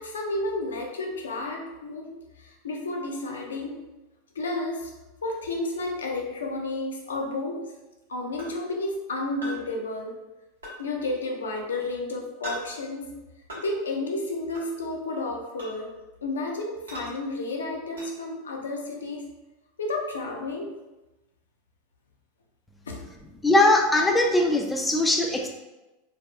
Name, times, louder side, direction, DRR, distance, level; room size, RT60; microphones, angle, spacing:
voice 1, 0.0-3.8 4.4-4.9 5.2-7.7 8.1-10.2 10.8-13.2 13.6-15.9 16.2-19.3 19.8-20.7 22.9-23.0, left 2 dB, 75° left, 1 dB, 0.5 m, -31 dB
sound 1, 8.4-8.5 9.4-9.6 10.6-10.8 12.4-12.6 13.5-13.6 14.5-14.7 15.6-15.8 16.9-17.1 18.0-18.1, equal, 80° right, 0.7 m, -37 dB
voice 2, 23.4-25.5, left 2 dB, 10° left, 2 dB, 0.3 m, -20 dB
3.3 x 2.0 x 2.2 m, 1.0 s
figure-of-eight pair, 85°, 0 cm